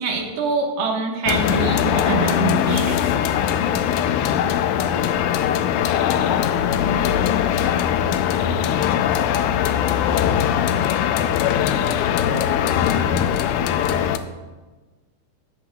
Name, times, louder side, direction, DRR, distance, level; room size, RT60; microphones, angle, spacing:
voice 1, 0.0-3.2, right 4 dB, 85° right, 1 dB, 3.2 m, -24 dB
sound 1, 1.3-14.2, left 9 dB, 85° left, 1.7 m, -20 dB
voice 2, 11.6-12.4 13.6-14.3, left 1 dB, 15° left, -6 dB, 0.8 m, -37 dB
14.5 x 11.0 x 2.3 m, 1.2 s
omnidirectional pair, 4.0 m